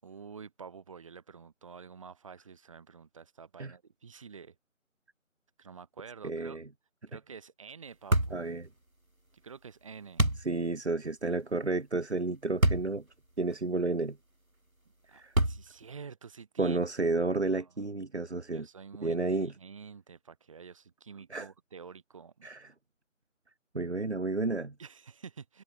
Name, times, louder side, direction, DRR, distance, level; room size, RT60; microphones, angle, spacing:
voice 1, 0.0-4.5 5.6-6.6 7.1-8.4 9.4-10.2 15.1-17.2 17.5-17.8 18.5-22.5 24.8-25.6, right 6 dB, 25° right, 7.8 m, -49 dB
voice 2, 6.2-6.6 8.3-8.7 10.5-13.0 13.4-14.2 15.1-15.3 16.6-18.7 19.0-19.5 21.3-21.5 22.4-22.7 23.7-24.7, right 3 dB, 55° right, 2.1 m, -31 dB
sound 1, 8.1-8.4 10.2-10.5 12.6-12.9 13.5-13.6 15.3-15.8, right 1 dB, 85° right, 5.1 m, -25 dB
figure-of-eight pair, 165°, 41 cm